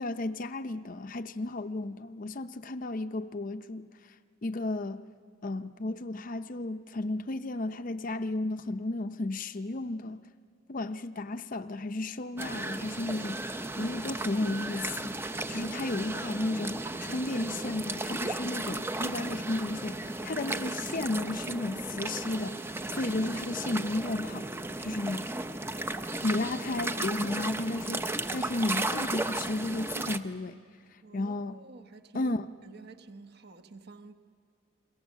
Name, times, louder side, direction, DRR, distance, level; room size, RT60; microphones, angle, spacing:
voice 1, 0.0-3.9 4.4-5.1 5.4-10.2 10.7-15.2 15.5-22.6 22.9-24.5 24.8-25.3 26.2-30.6 30.9-31.6 32.1-32.5, left 2 dB, 40° left, 0.5 m, -33 dB
sound 1, 12.4-30.2, right 2 dB, 10° right, 0.6 m, -35 dB
voice 2, 31.0-32.3 32.6-34.1, right 3 dB, 50° right, 1.0 m, -50 dB
30.0 x 23.5 x 7.3 m
head